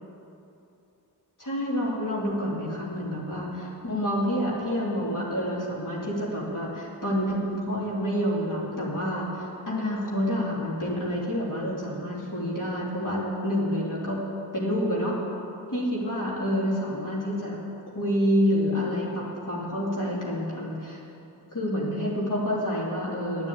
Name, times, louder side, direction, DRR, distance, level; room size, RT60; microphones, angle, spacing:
voice 1, 1.4-14.2 14.5-15.1 15.7-17.5 17.9-21.0 21.5-23.5, equal, 45° left, -5 dB, 3.3 m, -28 dB
11.0 x 7.3 x 8.8 m, 2.8 s
cardioid pair, 40°, 44 cm